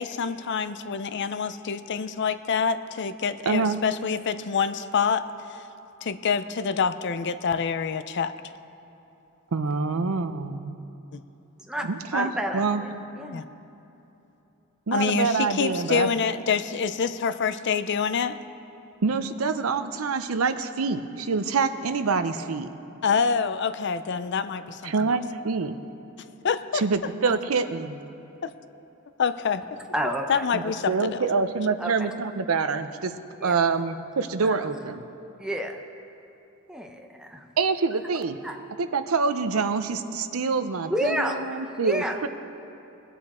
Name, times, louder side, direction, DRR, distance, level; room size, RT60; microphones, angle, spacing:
voice 1, 0.0-5.2 5.5-5.6 6.0-8.3 11.1-11.2 13.3-13.4 14.9-18.4 23.0-25.2 26.4-26.8 28.4-28.5 29.2-29.6 30.3-31.2, left 6 dB, 55° left, 12 dB, 0.5 m, -26 dB
voice 2, 3.5-3.8 9.5-10.7 11.8-12.8 14.9-16.1 19.0-22.7 24.8-25.7 26.7-28.0 30.5-33.1 33.4-35.0 37.6-38.4 38.8-42.3, right 4 dB, 85° right, 10 dB, 0.6 m, -26 dB
voice 3, 12.1-13.4 29.9-30.7 31.8-32.1 33.4-33.6 34.4-34.8 35.4-35.8 36.7-37.4 38.4-38.6 40.9-42.2, equal, 5° right, 3 dB, 0.8 m, -30 dB
20.5 x 8.4 x 4.3 m, 3.0 s
head